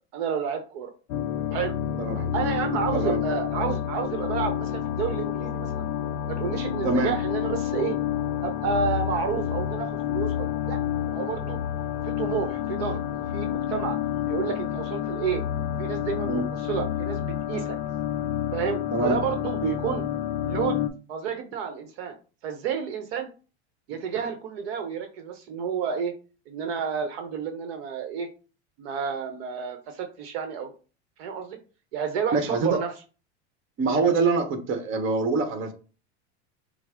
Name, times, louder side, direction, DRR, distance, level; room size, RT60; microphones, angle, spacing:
voice 1, 0.1-0.9 1.5-1.7 2.3-5.9 6.3-8.0 8.4-10.8 11.1-11.6 12.0-13.0 13.3-14.0 14.3-15.4 15.8-17.8 18.5-20.0 20.4-20.8 21.1-22.2 22.4-23.3 23.9-26.1 26.5-28.3 28.8-30.7 31.2-31.6 31.9-32.9, right 7 dB, 60° right, 6 dB, 0.8 m, -30 dB
sound 1, 1.1-20.9, left 10 dB, 50° left, 0.6 m, -29 dB
voice 2, 2.0-2.3 2.9-3.2 6.8-7.1 16.3-16.4 18.9-19.2 32.3-32.8 33.8-35.7, right 3 dB, 35° right, 8 dB, 1.0 m, -25 dB
5.9 x 2.0 x 3.6 m, 0.36 s
supercardioid pair, 115°, 34 cm